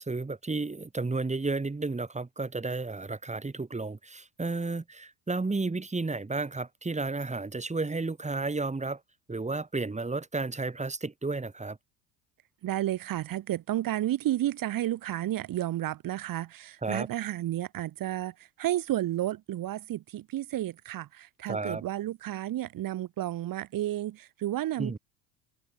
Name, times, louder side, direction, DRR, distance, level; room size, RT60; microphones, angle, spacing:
voice 1, 0.0-9.0 9.3-11.8 16.8-17.1 21.5-21.8 24.8-25.0, right 3 dB, 15° right, 6.6 m, -32 dB
voice 2, 12.6-25.0, right 13 dB, 50° right, 3.9 m, -32 dB
hypercardioid pair, 65°, 43 cm